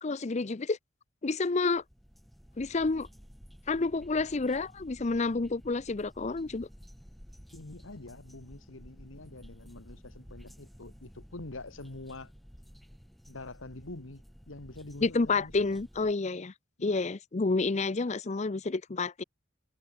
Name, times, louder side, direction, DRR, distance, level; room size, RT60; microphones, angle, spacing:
voice 1, 0.0-0.8 1.2-1.8 2.6-3.1 3.7-6.7 15.0-16.5 16.8-19.2, left 3 dB, 35° left, 0.6 m, -29 dB
sound 1, 1.6-16.1, equal, ahead, 3.0 m, -53 dB
voice 2, 7.5-12.3 13.3-15.8 16.8-17.1, left 2 dB, 85° left, 1.8 m, -46 dB
head